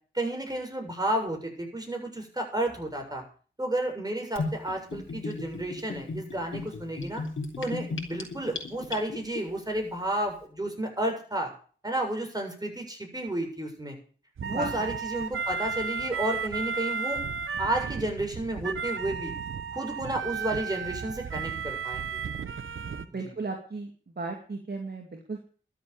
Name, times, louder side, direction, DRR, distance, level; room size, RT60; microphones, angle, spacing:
voice 1, 0.1-3.2 3.6-7.2 7.6-11.5 11.8-14.0 14.5-17.2 17.6-19.3 19.7-22.2 23.2-23.3, right 1 dB, 20° right, 2 dB, 7.2 m, -32 dB
Gurgling / Bathtub (filling or washing), 4.4-9.4, left 3 dB, 70° left, 3.7 m, -35 dB
voice 2, 14.4-15.0 23.1-23.9 24.2-25.4, right 3 dB, 50° right, 2 dB, 2.7 m, -35 dB
sound 1, 14.4-23.0, right 6 dB, 75° right, 1.1 m, -33 dB
12.5 x 8.1 x 9.0 m, 0.42 s
cardioid pair, 45°, 21 cm